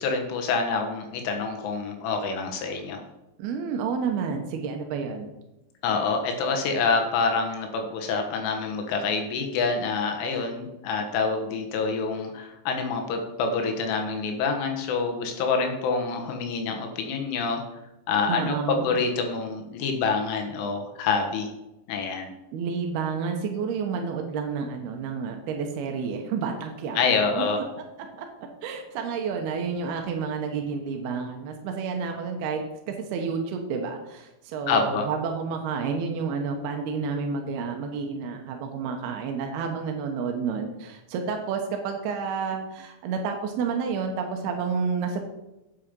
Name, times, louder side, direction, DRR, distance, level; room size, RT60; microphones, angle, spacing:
voice 1, 0.0-3.0 5.8-17.6 18.1-21.5 21.9-22.3 27.0-27.6 34.7-35.1, left 4 dB, 75° left, 4 dB, 3.6 m, -27 dB
voice 2, 3.4-5.3 18.3-18.9 22.5-27.0 27.4-27.5 28.2-32.6 32.9-45.2, right 5 dB, 80° right, 3 dB, 2.2 m, -30 dB
8.7 x 8.6 x 5.3 m, 0.94 s
omnidirectional pair, 6.0 m